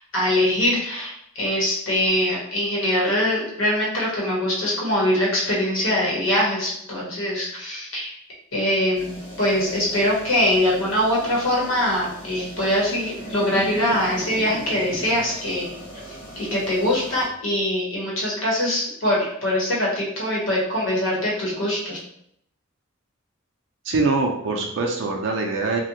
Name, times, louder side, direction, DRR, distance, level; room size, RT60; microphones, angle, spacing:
voice 1, 0.1-8.1 8.5-15.7 16.3-22.0, left 1 dB, 75° left, -4 dB, 1.0 m, -23 dB
sound 1, 8.9-17.3, right 1 dB, 25° left, 0.8 m, -40 dB
Laughter, 12.3-17.3, right 1 dB, 50° left, 0.5 m, -38 dB
voice 2, 23.8-25.8, right 3 dB, 65° right, 1 dB, 0.4 m, -23 dB
2.4 x 2.2 x 2.8 m, 0.71 s
head